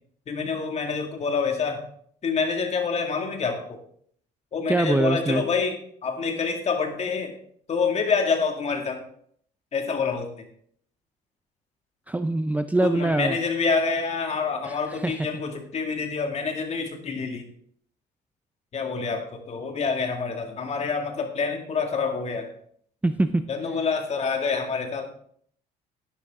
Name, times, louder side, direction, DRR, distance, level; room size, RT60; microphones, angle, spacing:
voice 1, 0.3-1.8 2.2-3.8 4.5-7.4 7.7-9.0 9.7-10.5 12.8-17.5 18.7-22.5 23.5-25.1, left 5 dB, 40° left, 4 dB, 2.2 m, -27 dB
voice 2, 4.7-5.4 12.1-13.4 14.6-14.7 15.0-15.1 23.0-23.4, right 2 dB, 10° right, 10 dB, 0.5 m, -23 dB
11.5 x 11.0 x 3.7 m, 0.63 s
cardioid pair, 110°, 17 cm